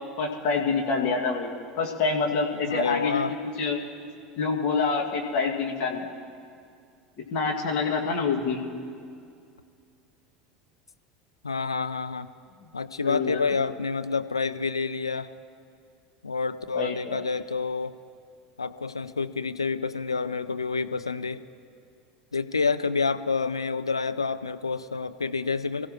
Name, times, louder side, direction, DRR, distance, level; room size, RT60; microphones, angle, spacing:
voice 1, 0.2-3.8 4.4-6.1 7.2-8.6 13.0-13.5 16.7-17.2, left 4 dB, 50° left, -1 dB, 2.3 m, -27 dB
voice 2, 2.5-3.4 11.4-12.3 12.7-15.3 16.2-18.0 18.6-21.4 22.3-25.9, left 4 dB, 80° left, 11 dB, 0.5 m, -28 dB
28.0 x 15.5 x 3.1 m, 2.3 s
figure-of-eight pair, 75°, 3 cm